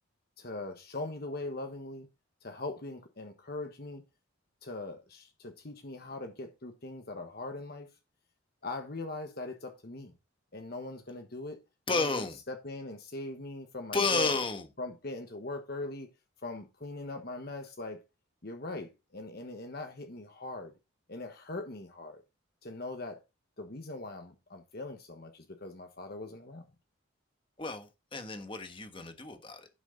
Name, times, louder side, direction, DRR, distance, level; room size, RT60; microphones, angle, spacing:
voice 1, 0.4-2.1 2.4-4.0 4.6-7.9 8.6-10.1 10.5-11.6 11.9-14.3 14.8-16.1 16.4-18.0 18.4-20.7 21.1-22.2 22.6-23.2 23.6-26.7, left 2 dB, 50° left, 1.2 m, -41 dB
voice 2, 11.9-12.4 13.9-14.6 27.6-29.7, left 3 dB, 25° left, 1.3 m, -31 dB
11.0 x 6.2 x 3.9 m
head